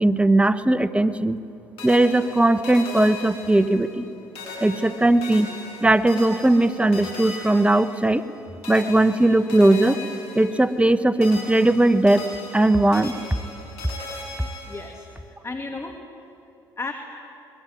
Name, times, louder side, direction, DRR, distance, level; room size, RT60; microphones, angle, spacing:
voice 1, 0.0-1.4 1.8-4.1 4.6-5.5 5.8-8.2 8.7-10.0 10.3-12.3 12.5-13.1, right 1 dB, 10° right, 13 dB, 1.3 m, -18 dB
sound 1, 1.8-4.1 4.3-8.3 8.6-10.9 11.2-15.1, left 3 dB, 80° left, 7.6 m, -38 dB
voice 2, 14.7-16.0 16.8-16.9, left 3 dB, 25° left, 4 dB, 2.4 m, -34 dB
25.5 x 21.0 x 9.4 m, 2.8 s
hypercardioid pair, 60°, 10 cm